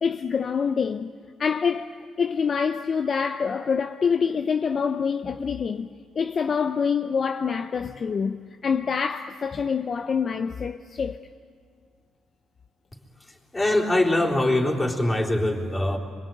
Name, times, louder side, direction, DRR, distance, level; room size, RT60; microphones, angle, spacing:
voice 1, 0.0-1.1 1.4-5.9 6.2-11.2, left 6 dB, 45° left, 0.6 m, -26 dB
voice 2, 13.5-16.0, left 1 dB, 20° left, 3.8 m, -22 dB
25.5 x 23.0 x 9.2 m
cardioid pair, 90°, 0 cm